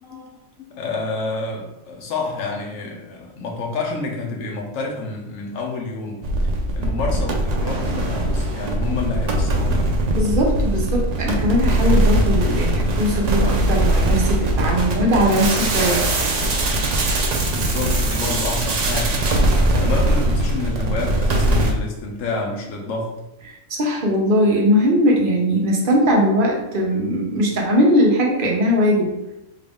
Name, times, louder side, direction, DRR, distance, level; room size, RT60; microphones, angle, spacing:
voice 1, 0.0-6.3 6.7-9.8 16.2-16.3 16.6-16.7 17.5-19.2 19.7-23.1, left 3 dB, 70° left, 0 dB, 1.1 m, -28 dB
sound 1, 6.2-21.7, right 1 dB, 85° right, 0.3 m, -20 dB
voice 2, 10.1-16.0 23.8-29.1, equal, 45° right, -1 dB, 0.8 m, -19 dB
3.8 x 2.5 x 3.5 m, 0.92 s
omnidirectional pair, 1.4 m